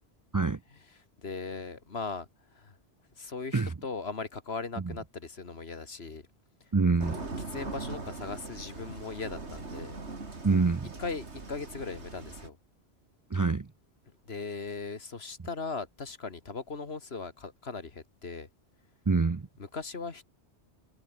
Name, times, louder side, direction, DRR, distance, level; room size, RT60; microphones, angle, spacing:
voice 1, 0.7-2.8 3.2-6.3 6.6-6.7 7.0-10.0 10.3-10.4 11.0-12.6 14.2-18.5 19.6-20.2, left 4 dB, 65° left, 2.2 m, -39 dB
voice 2, 6.7-7.2 10.4-10.9 13.3-13.7 19.1-19.5, right 4 dB, 30° right, 0.3 m, -25 dB
sound 1, 7.0-12.5, right 3 dB, 75° right, 3.3 m, -41 dB
omnidirectional pair, 1.2 m